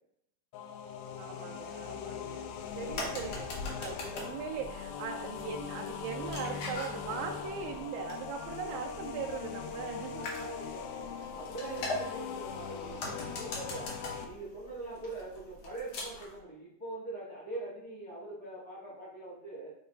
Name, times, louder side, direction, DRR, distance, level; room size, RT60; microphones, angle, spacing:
sound 1, 0.5-14.3, left 7 dB, 80° left, 2.1 m, -41 dB
voice 1, 1.2-2.5 2.8-10.2, right 6 dB, 80° right, 2 dB, 2.5 m, -40 dB
sound 2, 2.5-16.4, left 2 dB, 65° left, 1.7 m, -43 dB
voice 2, 9.9-11.0 11.3-13.9 14.2-19.7, right 2 dB, 35° left, -8 dB, 1.8 m, -43 dB
7.4 x 4.1 x 4.0 m, 0.73 s
omnidirectional pair, 4.8 m